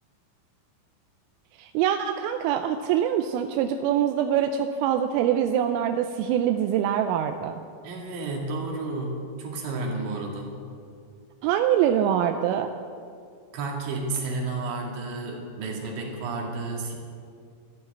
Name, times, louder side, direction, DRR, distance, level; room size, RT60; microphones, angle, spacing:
voice 1, 1.6-7.5 11.4-12.7, right 10 dB, 85° right, 6 dB, 3.2 m, -24 dB
voice 2, 7.8-10.5 13.5-17.0, right 3 dB, 65° right, -1 dB, 4.3 m, -31 dB
13.0 x 12.5 x 7.9 m, 2.3 s
omnidirectional pair, 5.8 m